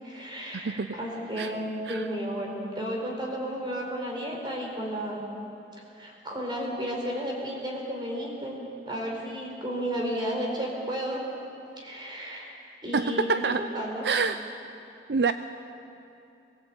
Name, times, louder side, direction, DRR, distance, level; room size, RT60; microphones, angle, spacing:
voice 1, 0.0-5.2 6.0-8.6 8.8-11.2 11.8-12.5 12.8-14.0, equal, 25° right, -1 dB, 4.6 m, -33 dB
voice 2, 0.5-1.0 1.4-1.5 1.9-2.1 12.9-13.6 14.0-14.4 15.1-15.3, right 4 dB, 70° right, 10 dB, 0.5 m, -26 dB
22.5 x 16.5 x 8.6 m, 2.6 s
head